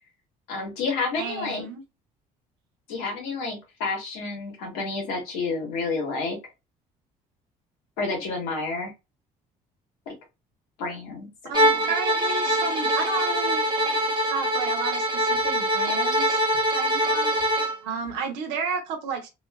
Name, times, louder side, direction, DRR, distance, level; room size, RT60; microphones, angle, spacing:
voice 1, 0.5-1.6 2.9-6.4 8.0-8.9 10.1-10.2 10.8-11.9, left 3 dB, 85° left, 1.1 m, -30 dB
voice 2, 1.2-1.8 11.4-13.8 14.2-16.4 16.7-17.3 17.8-19.3, right 5 dB, 80° right, 0.8 m, -32 dB
Bowed string instrument, 11.5-17.8, right 1 dB, 25° right, 0.8 m, -23 dB
2.5 x 2.4 x 2.2 m
supercardioid pair, 65°, 18 cm